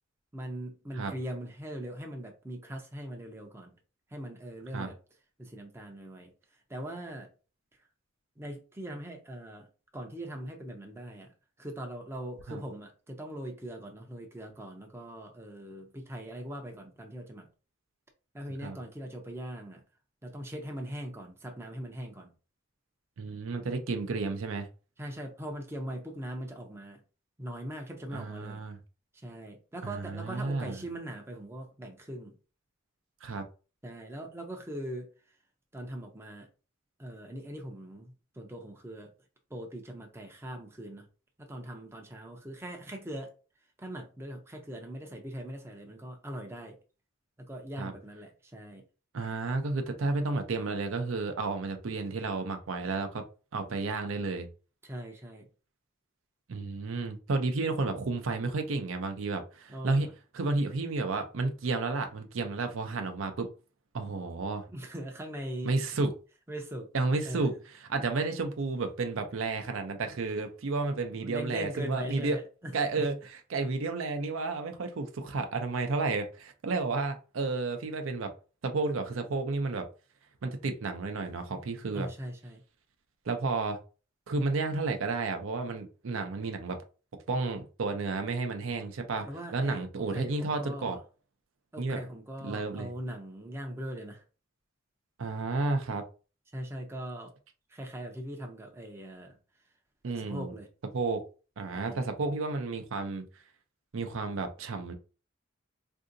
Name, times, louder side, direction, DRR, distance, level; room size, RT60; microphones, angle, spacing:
voice 1, 0.3-3.7 4.1-5.0 5.4-7.3 8.4-9.7 9.9-17.5 18.3-19.8 20.2-22.3 25.0-27.0 27.4-28.6 29.1-32.4 33.8-35.1 35.7-36.5 37.0-39.1 39.5-41.1 41.4-43.3 43.8-46.8 47.4-48.8 54.8-55.5 59.7-60.1 64.7-65.8 66.5-66.9 67.2-67.6 71.2-72.7 81.9-82.6 89.2-91.0 91.7-94.2 96.5-97.3 97.7-99.4 100.2-100.7 101.7-102.0, right 1 dB, 10° right, 0.5 m, -41 dB
voice 2, 23.2-24.7 28.1-28.8 29.8-30.8 33.2-33.4 47.8-47.9 49.1-53.2 53.5-54.5 56.5-60.1 60.3-63.5 63.9-64.7 65.6-66.1 66.9-67.5 67.9-72.4 72.7-73.1 73.5-78.3 78.6-79.9 80.4-82.1 83.3-83.8 84.3-86.8 87.3-89.3 89.5-91.0 91.8-92.0 92.4-92.9 95.2-96.0 100.0-100.5 100.9-101.2 101.6-103.3 103.9-104.9, right 3 dB, 70° right, 0.5 m, -31 dB
3.7 x 2.6 x 2.5 m
head